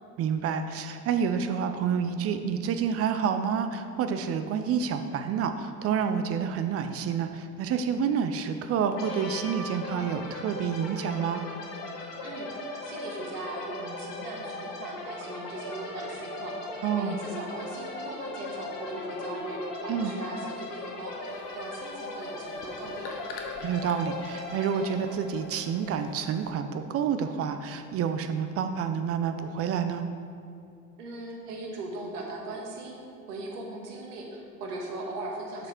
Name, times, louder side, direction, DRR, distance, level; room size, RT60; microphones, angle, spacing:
voice 1, 0.2-11.4 16.8-17.2 19.9-20.1 23.6-30.0, right 7 dB, 35° right, 8 dB, 0.4 m, -28 dB
sound 1, 8.9-26.5, left 2 dB, 80° left, 1.3 m, -38 dB
voice 2, 12.8-23.2 31.0-33.0 33.3-35.7, right 2 dB, 75° right, 0 dB, 1.4 m, -39 dB
sound 2, 21.3-26.5, left 4 dB, 60° left, 1.1 m, -49 dB
7.1 x 5.0 x 4.9 m, 2.5 s
hypercardioid pair, 70°, 47 cm